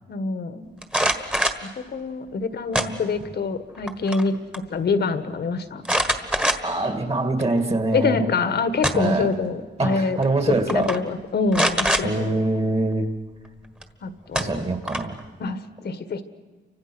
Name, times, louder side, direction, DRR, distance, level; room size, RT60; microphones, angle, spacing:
voice 1, 0.1-0.7 1.6-5.8 7.9-10.2 10.5-12.3 14.0-14.6 15.4-16.2, left 4 dB, 60° left, 10 dB, 1.7 m, -25 dB
sound 1, 0.8-1.7 2.7-3.3 3.7-4.3 4.5-4.6 5.8-6.9 7.4-7.5 8.5-9.2 10.2-10.4 10.7-11.0 11.5-12.1 13.8-13.9 14.3-15.2, equal, 5° right, 1.6 m, -24 dB
voice 2, 6.6-8.2 8.9-9.3 9.8-10.9 12.0-13.1 14.3-15.2, right 2 dB, 30° right, 7 dB, 2.2 m, -24 dB
30.0 x 25.5 x 6.2 m, 1.4 s
wide cardioid pair, 145°, 19 cm